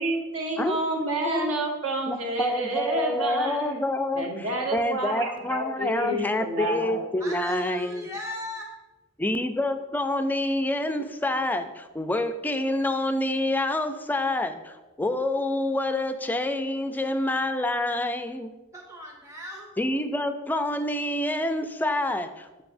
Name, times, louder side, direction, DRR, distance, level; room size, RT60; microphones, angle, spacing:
voice 1, 0.0-3.8 4.1-7.1, right 2 dB, 70° right, 0 dB, 1.3 m, -29 dB
voice 2, 2.1-4.2 4.7-8.1 9.2-18.5 19.8-22.6, left 1 dB, 10° left, 8 dB, 0.3 m, -27 dB
voice 3, 7.2-8.6 18.7-19.7, left 1 dB, 15° right, -1 dB, 0.7 m, -37 dB
6.9 x 6.7 x 2.6 m, 1.1 s
head